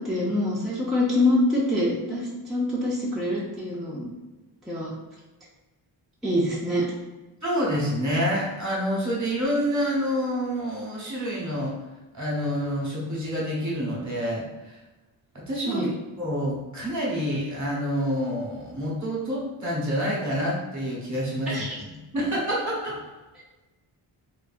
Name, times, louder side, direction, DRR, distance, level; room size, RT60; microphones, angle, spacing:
voice 1, 0.0-4.1 4.7-4.9 6.2-6.9 15.7-15.9 21.5-21.8, left 1 dB, ahead, -7 dB, 0.6 m, -25 dB
voice 2, 7.4-11.7 12.1-14.7 15.3-15.8 16.2-21.9 22.1-23.0, equal, 35° right, -5 dB, 1.1 m, -27 dB
2.6 x 2.3 x 2.4 m, 1.1 s
cardioid pair, 60°, 50 cm